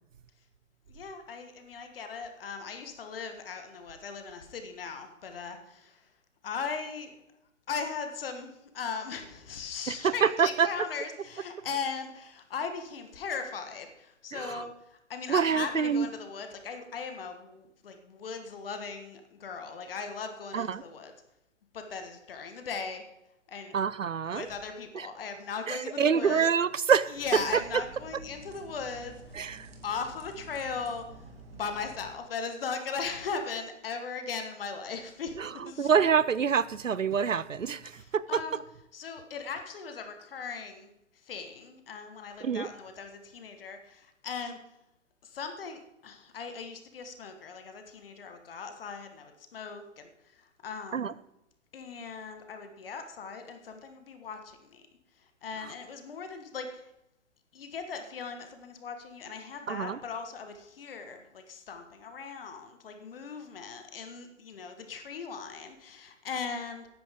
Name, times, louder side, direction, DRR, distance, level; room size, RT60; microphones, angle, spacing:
voice 1, 0.9-5.9 6.4-7.1 7.7-14.7 15.1-21.1 21.7-23.0 23.5-23.8 24.3-26.4 27.1-29.2 29.8-31.0 31.5-35.4 35.6-35.9 38.0-38.6 38.9-40.9 41.3-44.6 45.3-50.1 50.6-51.1 51.7-54.8 55.4-56.7 57.5-66.9, left 5 dB, 45° left, 1.6 m, -38 dB
voice 2, 9.9-10.7 14.3-14.7 15.3-16.1 20.5-20.8 23.7-24.5 24.9-25.1 25.7-27.6 29.3-29.7 35.3-38.4 42.4-42.7 50.9-51.1 55.6-55.7 59.7-60.0, right 6 dB, 80° right, 0.7 m, -26 dB
sound 1, 27.1-32.1, right 2 dB, 50° right, 2.4 m, -49 dB
14.5 x 10.0 x 3.7 m
figure-of-eight pair, 125°, 38 cm